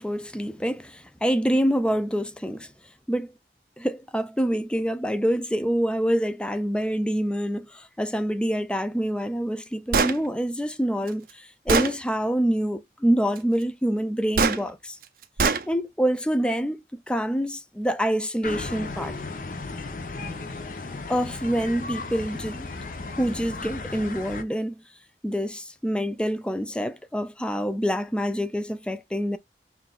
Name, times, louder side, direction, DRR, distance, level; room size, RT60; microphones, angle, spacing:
voice 1, 0.0-2.7 3.1-3.3 3.8-15.0 15.7-19.2 21.1-22.7 23.1-24.8 25.2-29.4, equal, 5° left, 0.4 m, -26 dB
Gunshot gunfire, 9.9-10.2 11.1-11.2 11.7-11.9 14.4-14.6 15.4-15.6, right 5 dB, 55° right, 0.5 m, -21 dB
sound 1, 18.4-24.4, left 3 dB, 50° left, 0.7 m, -35 dB
5.7 x 2.5 x 2.4 m
head